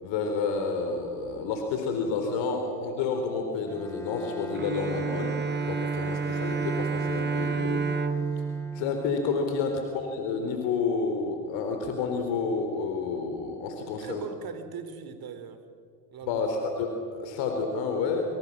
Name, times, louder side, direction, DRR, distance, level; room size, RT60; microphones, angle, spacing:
voice 1, 0.0-5.3 5.6-7.9 8.7-14.2 16.2-18.3, left 4 dB, 65° left, 4 dB, 4.1 m, -30 dB
Bowed string instrument, 3.7-9.6, left 1 dB, 5° left, 1.6 m, -40 dB
Bowed string instrument 2, 4.5-10.0, right 5 dB, 20° right, 1.3 m, -30 dB
voice 2, 13.8-15.6 16.1-16.4, right 7 dB, 45° right, 10 dB, 3.5 m, -40 dB
28.5 x 26.0 x 7.4 m, 2.3 s
hypercardioid pair, 75°, 49 cm